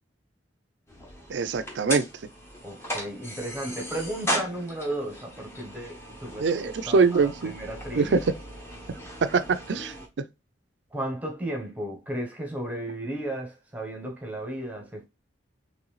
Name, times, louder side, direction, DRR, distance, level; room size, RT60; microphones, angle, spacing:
sound 1, 0.9-10.1, equal, 15° left, 1.1 m, -37 dB
voice 1, 1.3-2.1 6.4-7.5 7.9-8.4 9.2-9.9, right 4 dB, 70° right, 0.4 m, -23 dB
voice 2, 2.6-8.2 10.9-15.0, right 1 dB, 10° right, 1.1 m, -34 dB
3.9 x 3.1 x 3.2 m
head